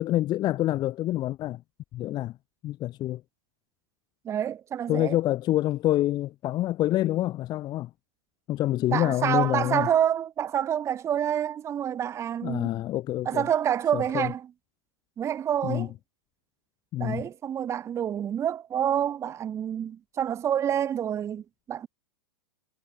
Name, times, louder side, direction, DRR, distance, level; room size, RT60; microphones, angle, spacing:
voice 1, 0.0-1.6 1.9-2.4 2.6-3.2 4.9-7.9 8.5-9.9 12.4-13.4 13.9-14.3 15.6-15.9 16.9-17.2, left 14 dB, 25° left, 1.4 m, -27 dB
voice 2, 4.2-5.2 8.9-12.7 13.2-14.5 15.2-15.9 17.0-21.9, right 9 dB, 15° right, 1.1 m, -27 dB
supercardioid pair, 155°, 17 cm